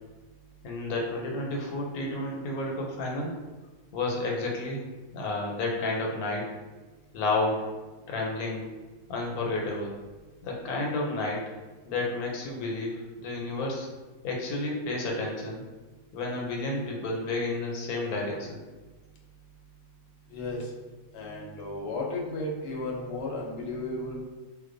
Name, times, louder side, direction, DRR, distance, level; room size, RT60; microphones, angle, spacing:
voice 1, 0.6-3.4 3.9-4.8 5.1-6.5 7.1-7.7 8.1-8.6 9.1-9.9 10.4-11.4 11.9-13.9 14.2-15.6 16.1-18.6, left 2 dB, 90° left, -1 dB, 1.1 m, -31 dB
voice 2, 20.3-20.7 21.1-24.2, left 2 dB, 65° left, -1 dB, 0.7 m, -34 dB
2.3 x 2.1 x 2.5 m, 1.3 s
omnidirectional pair, 1.5 m